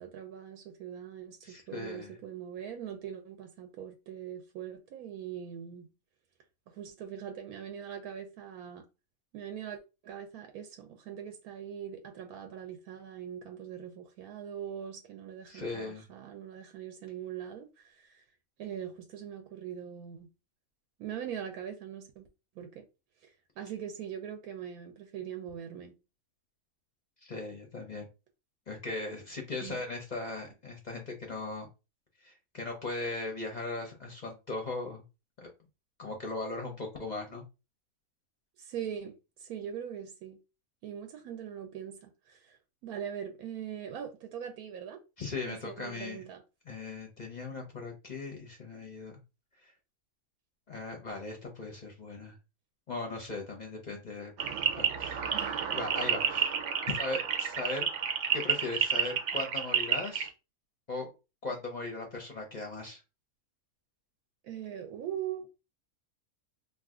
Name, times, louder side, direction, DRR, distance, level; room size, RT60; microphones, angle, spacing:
voice 1, 0.0-5.9 6.7-8.8 9.3-18.2 18.6-20.3 21.0-22.3 22.6-22.8 23.2-25.9 29.6-29.8 38.6-40.4 40.8-45.0 45.4-46.4 55.3-55.6 64.4-65.5, right 9 dB, 85° right, 1.1 m, -42 dB
voice 2, 1.4-2.2 15.5-16.1 27.2-28.0 28.7-31.7 32.2-35.0 35.4-35.5 36.0-37.4 45.2-46.2 46.7-49.2 50.7-52.4 52.9-54.3 54.8-55.3 55.7-56.6 56.9-57.9 58.3-60.3 60.9-61.1 61.4-63.0, left 3 dB, 50° left, 0.5 m, -38 dB
sound 1, 54.4-60.3, right 8 dB, 65° right, 0.8 m, -30 dB
2.6 x 2.4 x 3.5 m
omnidirectional pair, 1.5 m